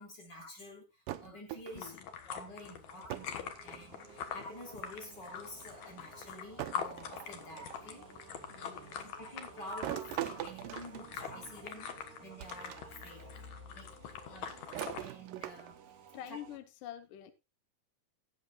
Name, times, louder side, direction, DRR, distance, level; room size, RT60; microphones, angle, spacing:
voice 1, 0.0-2.0 2.3-8.1 8.7-13.4 13.7-14.6 15.0-15.8 16.3-16.4, left 1 dB, 30° left, 3.9 m, -49 dB
sound 1, 1.1-2.0 3.1-3.4 3.7-4.3 5.4-5.5 6.6-7.9 9.8-11.7 12.4-12.8 13.2-13.3 14.4-15.9, right 14 dB, 85° right, 2.5 m, -42 dB
voice 2, 1.7-2.1 8.5-9.1 16.1-17.3, left 11 dB, 80° left, 2.7 m, -47 dB
sound 2, 1.7-15.1, left 8 dB, 65° left, 2.5 m, -45 dB
sound 3, 2.8-16.6, right 8 dB, 65° right, 2.7 m, -57 dB
18.5 x 8.4 x 2.4 m
omnidirectional pair, 3.8 m